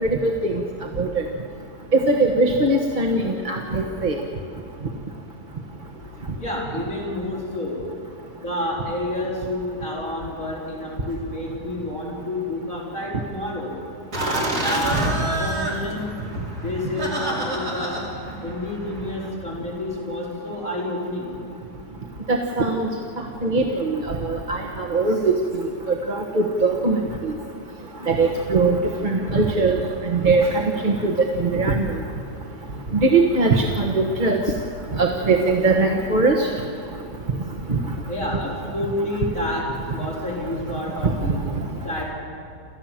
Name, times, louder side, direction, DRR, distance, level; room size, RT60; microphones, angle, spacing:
voice 1, 0.0-0.5 1.0-1.2 1.9-4.2 22.3-22.9 23.4-25.4 26.1-27.0 28.1-28.8 29.0-29.8 30.1-31.7 32.9-34.4 34.9-36.5 37.7-37.8, right 3 dB, 30° right, 1 dB, 1.2 m, -20 dB
voice 2, 5.7-6.1 6.4-7.8 8.4-13.7 14.1-16.1 16.6-18.0 18.4-21.3 38.1-39.7 39.9-41.4 41.8-42.0, left 1 dB, 50° left, -5 dB, 5.3 m, -29 dB
Laughter, 14.1-19.3, right 1 dB, 60° right, 3.9 m, -28 dB
27.5 x 14.5 x 7.5 m, 2.6 s
omnidirectional pair, 1.8 m